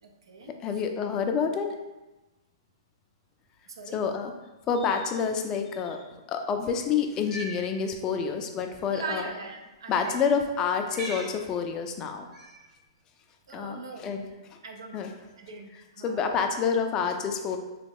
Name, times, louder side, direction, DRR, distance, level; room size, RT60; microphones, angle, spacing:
voice 1, 0.0-0.8 3.7-4.0 8.9-10.4 13.5-14.2 14.6-15.0 15.4-16.4, right 4 dB, 80° right, 4 dB, 0.5 m, -41 dB
voice 2, 0.6-1.7 3.9-4.3 4.7-6.0 6.3-9.3 9.9-12.3 13.5-14.2 14.9-15.1 16.0-17.6, left 6 dB, 25° left, 5 dB, 0.3 m, -28 dB
Cat, 7.1-7.6 8.7-8.8 10.0-10.3 10.8-11.4 12.3-12.7, right 1 dB, 25° right, 1.1 m, -40 dB
3.0 x 2.3 x 3.4 m, 1.1 s
hypercardioid pair, 135°, 3 cm